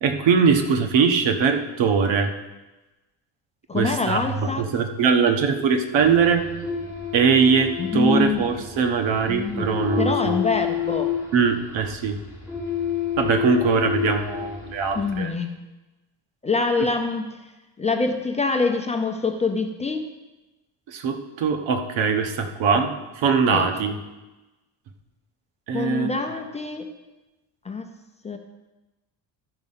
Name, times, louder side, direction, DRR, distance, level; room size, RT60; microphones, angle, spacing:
voice 1, 0.0-2.3 3.7-6.5 7.1-10.3 11.3-12.2 13.2-15.3 20.9-23.9 25.7-26.1, right 5 dB, 85° right, 5 dB, 1.3 m, -21 dB
voice 2, 3.7-4.7 7.8-8.4 9.3-11.1 14.9-15.5 16.4-17.5 17.8-20.0 23.5-23.7 25.7-26.9 27.6-27.9 28.2-28.4, left 4 dB, 15° left, 4 dB, 0.6 m, -25 dB
sound 1, 6.0-15.3, left 9 dB, 5° right, 1.8 m, -30 dB
13.0 x 5.5 x 5.6 m, 1.1 s
cardioid pair, 165°, 44 cm